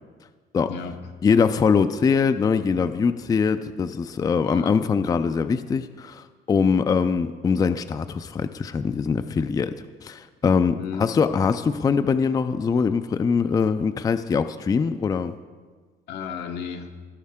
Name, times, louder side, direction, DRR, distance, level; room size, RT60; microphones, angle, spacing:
voice 1, 0.7-1.1 4.4-4.8 6.9-7.1 10.8-11.1 16.1-17.0, left 6 dB, 85° left, 5 dB, 1.0 m, -34 dB
voice 2, 1.2-9.7 10.0-15.4, left 5 dB, 20° left, 10 dB, 0.3 m, -22 dB
16.0 x 6.5 x 3.6 m, 1.5 s
cardioid pair, 110°, 17 cm